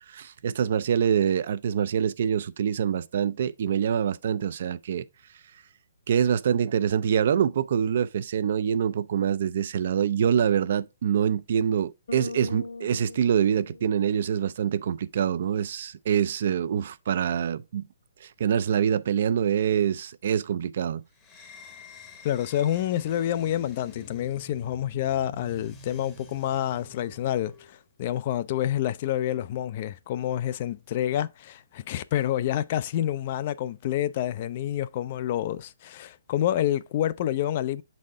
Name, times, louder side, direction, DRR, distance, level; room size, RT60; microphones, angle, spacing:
voice 1, 0.1-5.1 6.1-17.9 18.2-21.0, right 8 dB, 55° right, 0.3 m, -25 dB
Bass guitar, 12.1-14.4, left 3 dB, 75° left, 1.8 m, -40 dB
sound 1, 21.2-27.8, left 2 dB, 15° left, 0.8 m, -48 dB
voice 2, 22.2-37.8, left 11 dB, 40° left, 0.3 m, -28 dB
6.4 x 4.1 x 3.6 m
hypercardioid pair, 155°, 0 cm